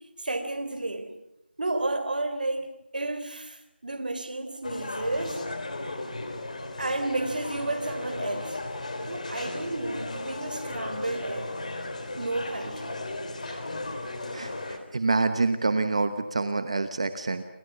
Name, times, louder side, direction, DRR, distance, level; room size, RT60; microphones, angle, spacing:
voice 1, 0.2-1.1 1.6-2.7 2.9-5.4 6.8-8.6 9.1-11.5 12.2-13.0, right 2 dB, 50° right, 3.3 m, -32 dB
sound 1, 4.6-14.8, left 2 dB, 40° left, 3.6 m, -35 dB
voice 2, 14.3-17.4, right 3 dB, 30° right, 1.1 m, -27 dB
28.5 x 25.5 x 6.1 m
figure-of-eight pair, 170°, 6 cm